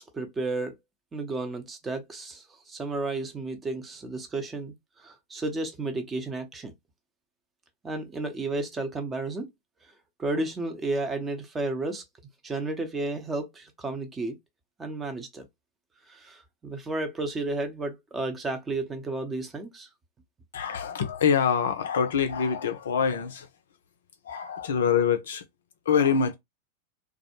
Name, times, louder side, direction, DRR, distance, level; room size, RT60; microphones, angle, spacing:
voice 1, 0.1-0.7 1.1-4.7 5.0-6.7 7.8-9.5 10.2-12.0 12.4-14.4 14.8-15.5 16.1-19.9, right 2 dB, 15° right, 0.6 m, -32 dB
voice 2, 20.5-23.5 24.2-25.4 25.9-26.3, left 7 dB, 65° left, 0.4 m, -25 dB
2.3 x 2.0 x 2.9 m
figure-of-eight pair, 90°, 0 cm